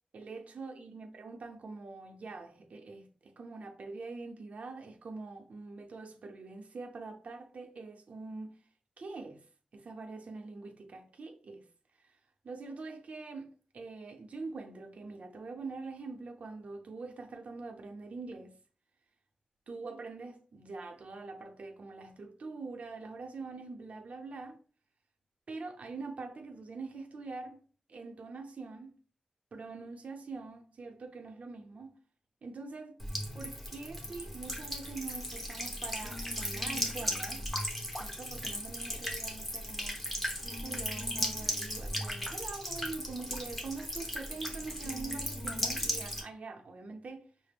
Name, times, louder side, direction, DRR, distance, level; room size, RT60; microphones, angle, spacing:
voice 1, 0.1-8.5 9.0-9.4 9.7-11.6 12.0-12.2 12.4-18.6 19.7-24.6 25.5-27.6 27.9-29.0 29.5-32.0 32.4-33.0 33.3-37.4 38.0-40.0 40.6-47.3, right 3 dB, 75° right, 0.6 m, -44 dB
Buzz / Water tap faucet / Trickle dribble, 33.0-46.2, equal, 10° left, 1.1 m, -36 dB
5.7 x 2.0 x 3.4 m
wide cardioid pair, 80°, 2 cm